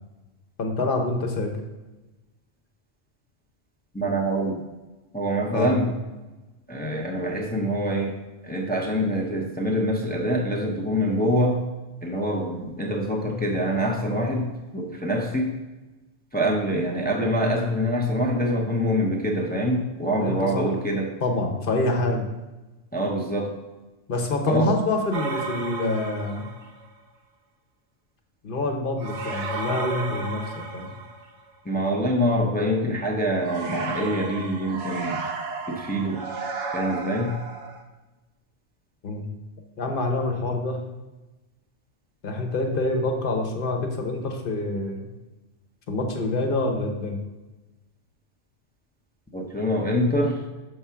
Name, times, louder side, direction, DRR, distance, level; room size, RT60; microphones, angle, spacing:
voice 1, 0.6-1.5 5.5-5.8 20.2-20.6 21.2-22.3 24.1-26.5 28.4-30.9 39.0-39.3 39.8-40.8 42.2-45.1 45.9-47.2, left 2 dB, 50° left, 3 dB, 1.1 m, -26 dB
voice 2, 3.9-4.5 5.1-5.9 6.7-8.2 8.4-11.6 12.0-15.6 16.3-21.1 22.9-23.5 24.5-24.7 31.6-35.2 35.7-36.2 36.7-37.3 49.3-50.4, equal, 10° left, 0 dB, 0.6 m, -25 dB
sound 1, 25.1-26.9 29.0-31.5 33.4-37.8, right 4 dB, 75° right, 1.2 m, -33 dB
6.8 x 3.6 x 5.7 m, 1.1 s
omnidirectional pair, 1.2 m